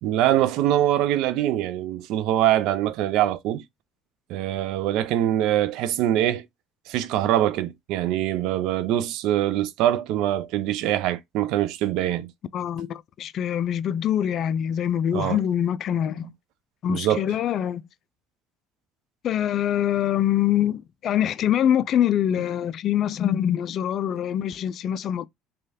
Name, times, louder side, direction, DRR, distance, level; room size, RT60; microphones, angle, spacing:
voice 1, 0.0-3.6 4.3-6.5 6.9-12.3 15.1-15.4 16.9-17.3, right 12 dB, 70° right, 0.4 m, -23 dB
voice 2, 12.5-16.3 16.8-17.9 19.2-25.3, left 10 dB, 55° left, 0.3 m, -24 dB
3.1 x 2.3 x 2.6 m
hypercardioid pair, 70°, 0 cm